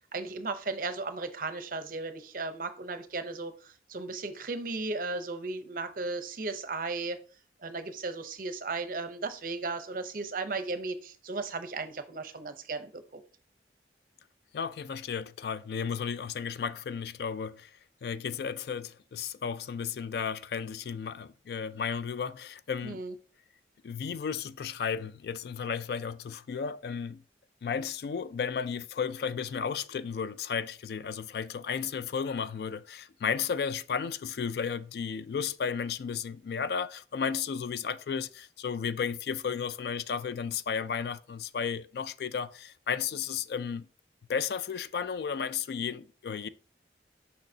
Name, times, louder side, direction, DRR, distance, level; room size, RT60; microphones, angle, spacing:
voice 1, 0.1-7.2 7.6-13.2 22.8-23.1, right 3 dB, 50° right, 0.6 m, -35 dB
voice 2, 14.5-17.7 18.0-23.0 23.8-27.2 27.6-43.9 44.3-46.5, left 6 dB, 60° left, 0.3 m, -33 dB
6.5 x 5.4 x 2.7 m
head